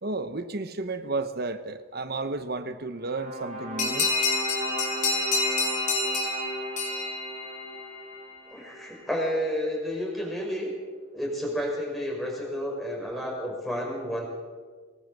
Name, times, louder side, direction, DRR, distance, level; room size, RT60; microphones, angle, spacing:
voice 1, 0.0-4.1, right 3 dB, 50° right, 11 dB, 1.1 m, -32 dB
sound 1, 3.0-9.2, right 1 dB, 30° right, 4.7 m, -36 dB
sound 2, 3.8-8.0, left 3 dB, 35° left, 4.7 m, -28 dB
voice 2, 8.5-10.7 11.1-14.3, equal, ahead, -2 dB, 5.5 m, -31 dB
24.0 x 19.5 x 6.7 m, 1.5 s
head